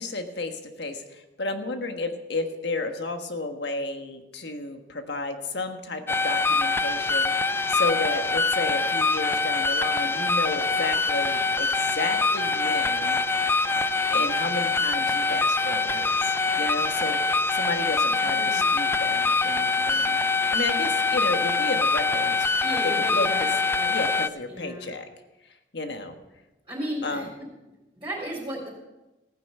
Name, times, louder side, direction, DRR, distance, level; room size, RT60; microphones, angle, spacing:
voice 1, 0.0-13.2 14.1-20.2 20.5-22.5 23.1-23.3 23.9-25.1 25.7-26.2 27.0-27.3, left 2 dB, 70° left, 6 dB, 1.4 m, -32 dB
sound 1, 6.1-24.3, left 3 dB, 15° left, 0.4 m, -24 dB
voice 2, 18.2-18.7 22.6-23.9 24.5-24.9 26.6-27.3 28.0-28.7, equal, 25° right, -5 dB, 3.8 m, -35 dB
15.5 x 9.3 x 5.5 m, 1.0 s
head